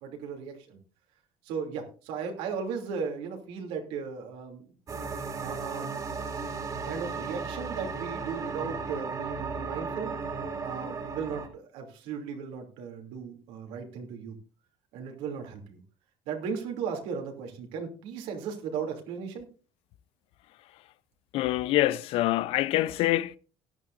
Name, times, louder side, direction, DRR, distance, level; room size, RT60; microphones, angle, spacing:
voice 1, 0.0-0.8 1.4-4.6 5.4-6.0 6.8-10.2 10.6-14.4 14.9-15.8 16.3-19.5, right 6 dB, 85° right, 2.9 m, -36 dB
sound 1, 4.9-11.5, right 4 dB, 35° right, 2.5 m, -35 dB
voice 2, 21.3-23.4, left 15 dB, 70° left, 0.6 m, -25 dB
16.5 x 11.5 x 2.6 m
cardioid pair, 115°, 10 cm